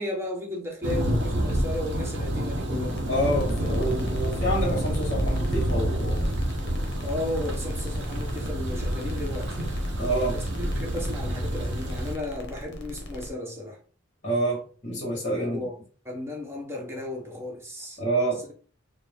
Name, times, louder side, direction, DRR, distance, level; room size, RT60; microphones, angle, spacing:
voice 1, 0.0-3.1 7.0-9.7 10.3-13.8 15.4-15.7 16.0-18.0, left 1 dB, 15° right, 1.1 m, -34 dB
Thunder, 0.8-12.2, right 1 dB, 65° right, 0.9 m, -28 dB
sound 1, 2.9-13.3, equal, 60° left, 0.8 m, -40 dB
voice 2, 3.1-6.2 10.0-10.4 14.2-15.7 18.0-18.4, right 1 dB, 35° left, 1.4 m, -27 dB
4.3 x 2.2 x 3.6 m
head